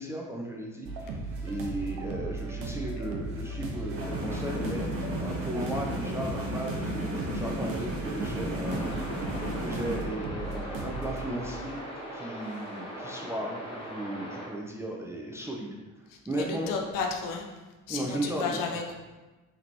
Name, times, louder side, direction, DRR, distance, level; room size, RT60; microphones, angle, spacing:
voice 1, 0.0-4.9 5.2-9.3 9.6-11.8 12.1-15.7 16.3-16.7 17.9-18.8, right 1 dB, 5° right, -1 dB, 0.4 m, -35 dB
sound 1, 0.8-13.6, right 2 dB, 60° right, 0.7 m, -37 dB
sound 2, 3.9-10.0, equal, 35° right, 1.2 m, -34 dB
sound 3, 8.6-14.5, equal, 10° left, 1.2 m, -40 dB
voice 2, 16.3-17.4 17.9-18.9, left 5 dB, 50° left, 2 dB, 0.6 m, -32 dB
3.7 x 3.4 x 2.9 m, 1.2 s
figure-of-eight pair, 45°, 41 cm